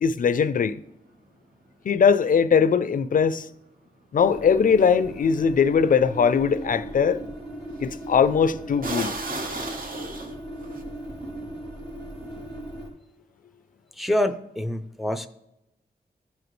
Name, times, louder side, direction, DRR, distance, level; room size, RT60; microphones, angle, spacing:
voice 1, 0.0-0.8 1.9-3.5 4.1-7.2 7.8-9.1, left 6 dB, 55° left, 0.4 m, -20 dB
sound 1, 4.2-12.9, right 1 dB, 80° right, 2.8 m, -38 dB
sound 2, 7.8-8.0 8.8-10.8, right 2 dB, 55° right, 1.0 m, -33 dB
voice 2, 14.0-15.3, left 1 dB, ahead, 0.5 m, -26 dB
13.5 x 5.1 x 3.1 m
wide cardioid pair, 130°, 17 cm